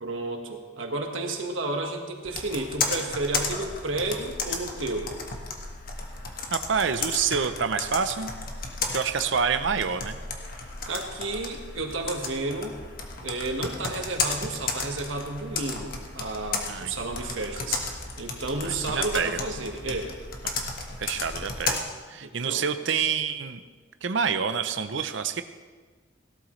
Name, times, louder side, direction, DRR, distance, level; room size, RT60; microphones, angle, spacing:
voice 1, 0.0-5.1 10.9-12.8 13.2-17.8 18.2-20.1 22.2-22.7, right 2 dB, 85° right, 3 dB, 1.5 m, -32 dB
Computer keyboard, 2.2-21.8, left 4 dB, 50° left, 1.4 m, -34 dB
voice 2, 6.5-8.3 8.9-10.2 16.7-16.9 18.6-19.4 20.4-20.5 21.0-23.6 24.0-25.4, right 6 dB, 70° right, 10 dB, 0.6 m, -27 dB
17.5 x 12.5 x 3.2 m, 1.5 s
head